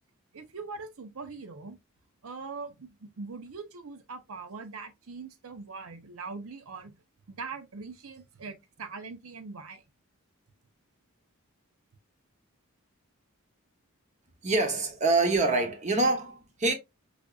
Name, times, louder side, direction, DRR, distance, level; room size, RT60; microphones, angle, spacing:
voice 1, 0.3-1.8 2.2-7.0 7.3-9.8, right 4 dB, 75° right, 0.7 m, -42 dB
voice 2, 14.4-16.7, right 2 dB, 35° right, 0.8 m, -25 dB
4.9 x 2.5 x 2.3 m
head